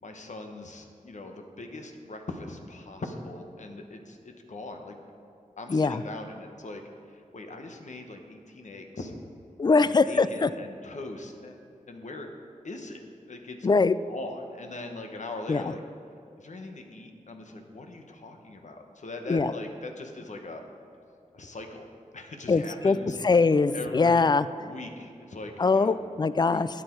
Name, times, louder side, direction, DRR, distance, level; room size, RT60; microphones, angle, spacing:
voice 1, 0.0-4.9 5.6-6.8 7.1-9.2 9.7-12.3 12.6-13.0 13.3-13.6 14.1-15.8 16.4-20.6 21.3-21.9 22.1-23.2 23.7-24.3 24.6-26.0 26.5-26.6, left 2 dB, 60° left, 4 dB, 1.2 m, -41 dB
voice 2, 5.7-6.0 9.6-10.5 13.6-13.9 15.5-15.7 19.3-19.5 22.5-23.0 23.2-24.4 25.6-26.7, left 4 dB, 30° left, 15 dB, 0.4 m, -22 dB
12.0 x 8.7 x 4.6 m, 2.6 s
wide cardioid pair, 80°, 14 cm